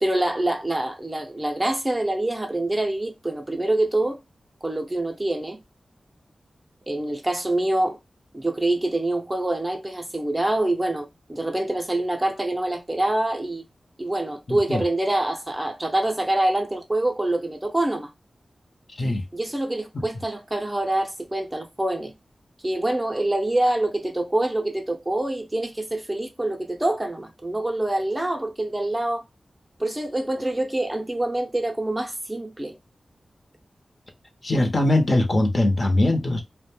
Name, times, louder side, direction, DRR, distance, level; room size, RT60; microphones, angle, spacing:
voice 1, 0.0-4.2 4.6-5.6 6.9-8.0 8.3-13.6 14.0-18.1 19.3-22.1 22.6-29.2 29.8-32.8, right 1 dB, 15° right, 0.5 m, -25 dB
voice 2, 14.5-14.8 19.0-19.2 34.4-36.4, left 1 dB, 40° left, 0.7 m, -21 dB
2.5 x 2.1 x 3.3 m
wide cardioid pair, 85°, 0 cm